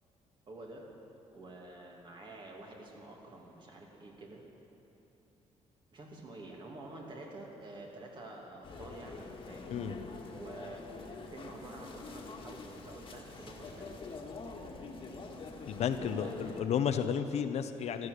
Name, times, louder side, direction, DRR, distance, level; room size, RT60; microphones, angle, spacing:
voice 1, 0.5-0.9 1.3-4.4 5.9-9.8 10.3-10.8 11.1-14.2 15.9-16.6, right 2 dB, 40° right, -1 dB, 2.6 m, -48 dB
sound 1, 8.6-16.6, left 3 dB, 45° left, 1.7 m, -46 dB
voice 2, 15.7-18.1, left 7 dB, 60° left, 9 dB, 0.8 m, -32 dB
15.0 x 12.5 x 6.6 m, 2.9 s
cardioid pair, 120°, 12 cm